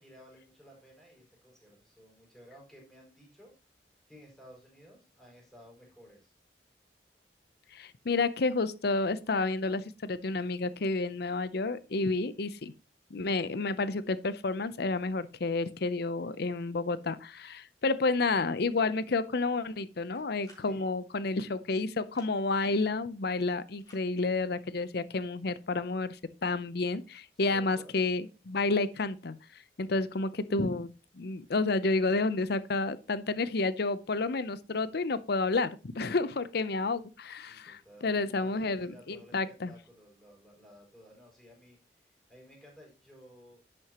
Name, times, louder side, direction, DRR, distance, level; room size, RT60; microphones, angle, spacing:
voice 1, 0.0-3.5 4.1-6.3 20.6-20.8 27.3-27.9 37.4-43.6, equal, ahead, 4.8 m, -55 dB
voice 2, 7.7-12.7 13.1-29.4 29.8-39.7, left 3 dB, 65° left, 0.7 m, -30 dB
sound 1, 20.1-20.7 22.0-22.3 23.8-24.1, left 2 dB, 25° left, 3.7 m, -58 dB
10.5 x 7.7 x 3.0 m
head